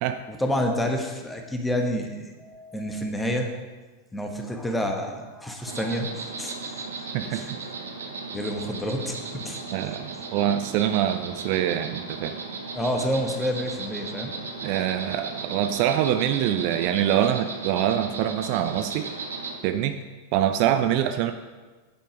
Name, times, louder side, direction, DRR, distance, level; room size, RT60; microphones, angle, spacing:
voice 1, 0.3-3.5 4.1-6.7 7.3-7.5 8.3-9.6 12.7-14.3, equal, 5° left, 3 dB, 1.2 m, -29 dB
Insect, 5.7-19.6, right 4 dB, 70° right, 1.0 m, -36 dB
voice 2, 7.1-7.6 9.7-12.4 14.6-19.1 19.6-20.0 20.3-21.3, right 11 dB, 45° right, 9 dB, 0.4 m, -25 dB
10.0 x 5.3 x 5.0 m, 1.3 s
figure-of-eight pair, 90°, 0 cm